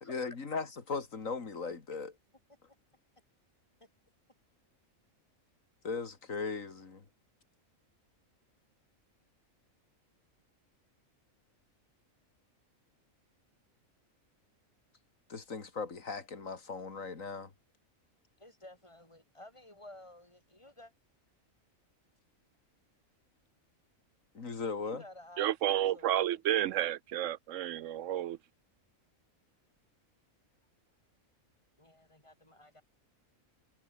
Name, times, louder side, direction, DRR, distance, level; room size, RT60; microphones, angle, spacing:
voice 1, 0.1-2.1 5.8-7.0 15.3-17.5 24.3-25.0, left 4 dB, 70° left, 2.8 m, -38 dB
voice 2, 18.4-20.9 24.8-26.4 31.8-32.8, left 1 dB, 20° left, 6.4 m, -53 dB
voice 3, 25.4-28.4, right 12 dB, 70° right, 0.9 m, -31 dB
omnidirectional pair, 1.4 m